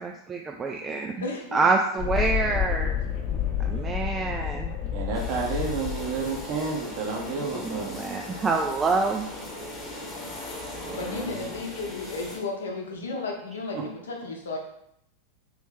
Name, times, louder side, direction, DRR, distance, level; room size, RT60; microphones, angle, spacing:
voice 1, 0.0-1.1 1.5-2.9 3.7-4.7 7.9-9.3, right 4 dB, 20° right, 1 dB, 0.3 m, -26 dB
voice 2, 1.2-1.6 10.9-14.6, left 3 dB, 65° left, 1 dB, 0.8 m, -33 dB
Thunderstorm, 2.0-9.4, left 9 dB, 40° left, 0.8 m, -31 dB
voice 3, 4.9-8.0 10.8-11.7 13.7-13.8, right 4 dB, 45° right, -1 dB, 0.6 m, -31 dB
sound 1, 5.1-12.4, left 2 dB, 20° left, 1.0 m, -39 dB
3.1 x 3.0 x 3.5 m, 0.77 s
figure-of-eight pair, 90°, 0 cm